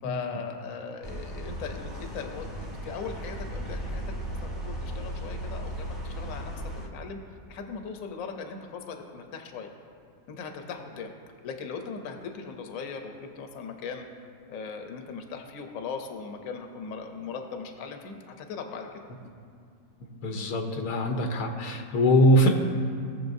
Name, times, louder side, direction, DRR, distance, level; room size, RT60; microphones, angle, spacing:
voice 1, 0.0-6.5 6.8-7.2 7.5-9.7 10.3-11.1 11.4-14.1 14.5-18.9, left 5 dB, 65° left, 4 dB, 1.2 m, -39 dB
sound 1, 1.0-6.9, right 1 dB, 15° right, 1.3 m, -36 dB
voice 2, 20.2-22.5, equal, 90° left, 3 dB, 1.4 m, -22 dB
18.5 x 6.7 x 2.7 m, 2.3 s
omnidirectional pair, 1.6 m